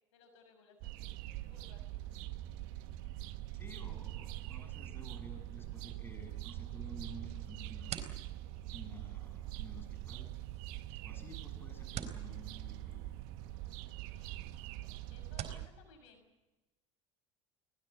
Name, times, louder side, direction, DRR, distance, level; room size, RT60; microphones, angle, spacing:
voice 1, 0.1-2.0 14.1-14.5 14.8-16.2, left 4 dB, 75° left, 6 dB, 6.0 m, -62 dB
sound 1, 0.8-15.7, right 14 dB, 65° right, 1.4 m, -44 dB
voice 2, 3.5-8.2 8.7-10.3 11.0-13.1, right 1 dB, 15° left, 6 dB, 7.5 m, -52 dB
sound 2, 7.3-15.7, right 9 dB, 45° right, 4.3 m, -50 dB
23.5 x 19.5 x 8.4 m, 1.0 s
hypercardioid pair, 80°, 16 cm